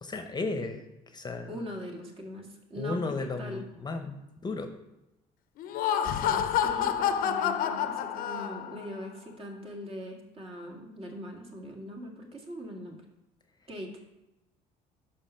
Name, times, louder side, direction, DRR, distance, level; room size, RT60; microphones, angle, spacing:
voice 1, 0.0-1.5 2.8-4.7, left 3 dB, 25° left, 7 dB, 0.8 m, -34 dB
voice 2, 1.5-3.6 6.0-13.0 13.7-13.9, equal, 40° right, 1 dB, 1.9 m, -41 dB
Laughter, 5.6-8.9, left 9 dB, 65° left, 0.6 m, -28 dB
5.6 x 5.2 x 5.7 m, 0.94 s
supercardioid pair, 85°, 16 cm